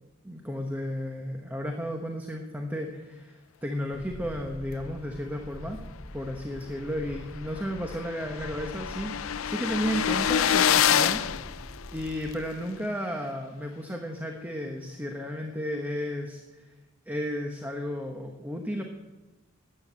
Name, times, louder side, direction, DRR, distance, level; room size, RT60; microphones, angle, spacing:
voice 1, 0.2-5.8 6.1-16.7 17.1-18.8, equal, 10° right, 3 dB, 1.0 m, -33 dB
sound 1, 3.9-12.4, equal, 65° right, 3.3 m, -44 dB
sound 2, 6.8-6.9 7.2-7.3 7.5-12.3, left 9 dB, 85° left, 0.5 m, -26 dB
13.5 x 8.8 x 8.6 m, 1.1 s
head